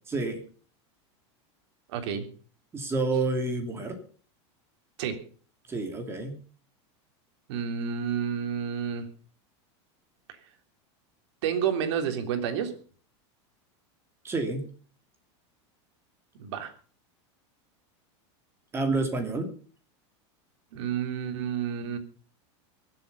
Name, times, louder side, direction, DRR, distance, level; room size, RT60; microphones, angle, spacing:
voice 1, 0.1-0.4 2.7-4.0 5.7-6.4 14.2-14.6 18.7-19.5, right 3 dB, 15° right, 6 dB, 2.8 m, -29 dB
voice 2, 1.9-2.2 5.0-5.2 7.5-9.1 11.4-12.8 16.4-16.7 20.7-22.0, right 8 dB, 70° right, 7 dB, 3.3 m, -30 dB
23.5 x 8.0 x 5.5 m, 0.41 s
supercardioid pair, 155°, 15 cm